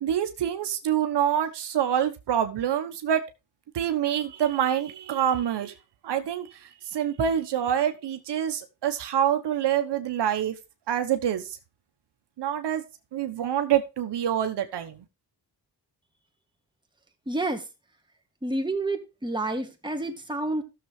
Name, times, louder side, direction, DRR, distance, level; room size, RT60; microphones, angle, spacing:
voice 1, 0.0-3.2 3.7-5.7 6.0-10.5 10.9-11.6 12.4-12.8 13.1-15.0, right 9 dB, 75° right, 1.1 m, -26 dB
voice 2, 17.3-17.7 18.4-20.6, right 2 dB, 10° right, 2.3 m, -29 dB
15.0 x 6.9 x 3.2 m
cardioid pair, 75°, 42 cm